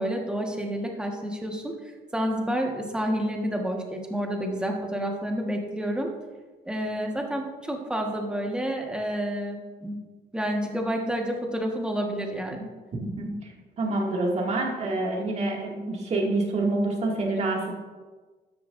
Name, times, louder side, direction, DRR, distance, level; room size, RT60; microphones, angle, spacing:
voice 1, 0.0-1.7 2.1-6.1 6.6-10.0 10.3-12.7, equal, 5° right, 1 dB, 1.5 m, -29 dB
voice 2, 13.0-13.5 13.8-17.7, right 2 dB, 40° right, -1 dB, 2.2 m, -27 dB
12.5 x 7.8 x 2.6 m, 1.3 s
cardioid pair, 110°, 17 cm